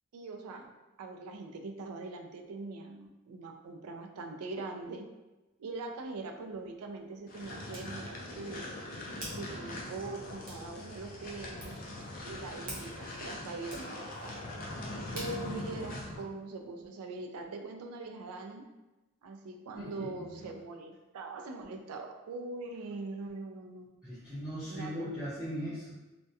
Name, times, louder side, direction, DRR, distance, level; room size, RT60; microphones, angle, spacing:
voice 1, 0.1-0.7 1.0-5.1 5.6-8.7 9.4-11.8 12.2-14.4 15.1-18.7 19.2-23.9 24.7-25.1 25.5-25.6, right 3 dB, 85° right, 4 dB, 0.3 m, -42 dB
Hands, 6.1-16.9, right 1 dB, 40° right, 0.8 m, -51 dB
sound 1, 7.3-16.3, left 1 dB, 40° left, 0.4 m, -42 dB
voice 2, 19.7-20.3 24.0-25.9, equal, 5° right, -16 dB, 0.7 m, -39 dB
2.3 x 2.1 x 2.7 m, 1.1 s
head